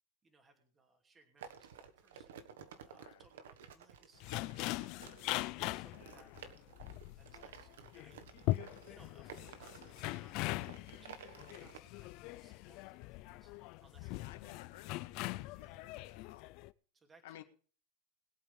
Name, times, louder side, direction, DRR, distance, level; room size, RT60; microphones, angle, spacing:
voice 1, 0.2-2.5 2.8-5.2 5.7-13.6 13.8-14.8 15.5-15.9 16.9-17.4, right 3 dB, 15° right, 3 dB, 2.6 m, -67 dB
sound 1, 1.4-11.8, right 7 dB, 85° right, 1.5 m, -54 dB
sound 2, 4.2-16.7, left 18 dB, 50° left, 0.5 m, -41 dB
voice 2, 14.1-15.2 15.5-16.5 17.2-17.4, left 13 dB, 70° left, 5 dB, 1.7 m, -55 dB
21.5 x 8.4 x 3.5 m, 0.39 s
supercardioid pair, 145°, 0 cm